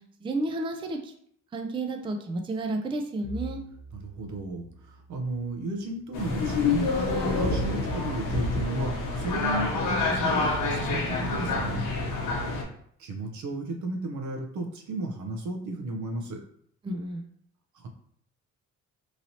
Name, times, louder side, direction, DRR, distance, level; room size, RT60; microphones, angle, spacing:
voice 1, 0.2-1.1 1.5-3.6 12.3-12.7 16.8-17.3, right 2 dB, 20° right, 4 dB, 0.4 m, -32 dB
Bowed string instrument, 3.2-7.4, left 1 dB, 55° left, 0.7 m, -46 dB
voice 2, 3.9-11.9 13.0-16.4 17.7-17.9, right 2 dB, 75° right, 2 dB, 0.7 m, -34 dB
sound 1, 6.1-12.6, left 3 dB, 85° left, 0.8 m, -27 dB
3.1 x 2.7 x 2.7 m, 0.65 s
cardioid pair, 90°, 30 cm